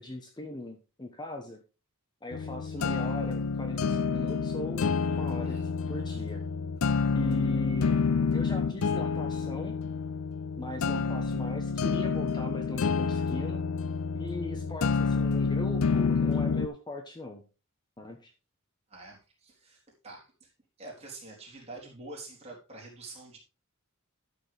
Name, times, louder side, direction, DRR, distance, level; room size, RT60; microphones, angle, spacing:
voice 1, 0.0-1.6 2.2-5.6 5.9-6.4 7.1-8.0 8.3-9.7 10.6-13.6 14.1-17.4 18.0-18.3, left 1 dB, 20° left, 4 dB, 1.1 m, -39 dB
sound 1, 2.3-16.7, left 5 dB, 70° left, 0.5 m, -28 dB
voice 2, 2.8-3.1 5.4-5.7 6.1-6.2 18.9-20.5 20.8-23.4, right 2 dB, 30° right, -3 dB, 3.8 m, -47 dB
12.0 x 6.8 x 3.5 m, 0.31 s
head